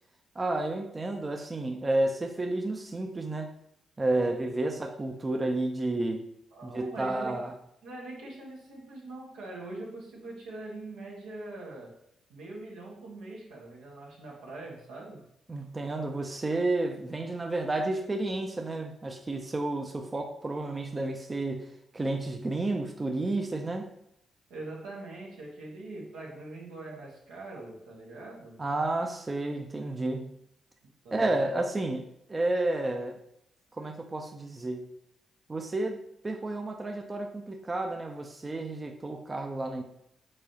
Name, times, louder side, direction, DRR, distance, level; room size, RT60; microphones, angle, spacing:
voice 1, 0.4-3.5 4.0-6.3 6.6-7.6 15.5-23.9 28.6-30.4 31.1-33.2 33.7-34.8 35.5-39.8, right 2 dB, 30° right, 0.6 m, -31 dB
voice 2, 6.5-7.4 7.8-12.0 12.3-15.2 24.5-28.6 31.0-31.6, right 2 dB, 85° right, 1.3 m, -43 dB
4.7 x 3.9 x 2.8 m
hypercardioid pair, 45°, 0 cm